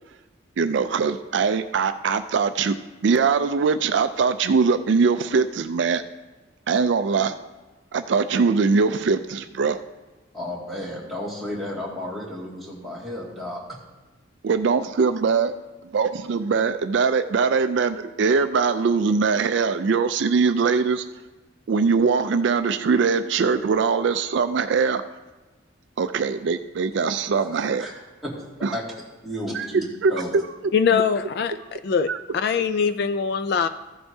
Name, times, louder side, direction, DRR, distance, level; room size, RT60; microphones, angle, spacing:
voice 1, 0.6-2.8 3.0-6.0 6.7-7.3 7.9-9.8 14.4-15.5 15.9-21.0 21.7-25.0 26.0-27.9 28.6-28.8 29.5-29.7 30.0-30.4 32.1-32.2, right 5 dB, 60° right, 10 dB, 0.4 m, -22 dB
voice 2, 10.3-13.6 27.4-27.9 28.2-28.3 28.7-28.8 29.2-29.8 30.1-30.3, left 1 dB, ahead, -8 dB, 2.2 m, -32 dB
voice 3, 30.7-33.7, left 6 dB, 50° left, 11 dB, 0.3 m, -23 dB
15.0 x 7.8 x 2.7 m, 1.2 s
head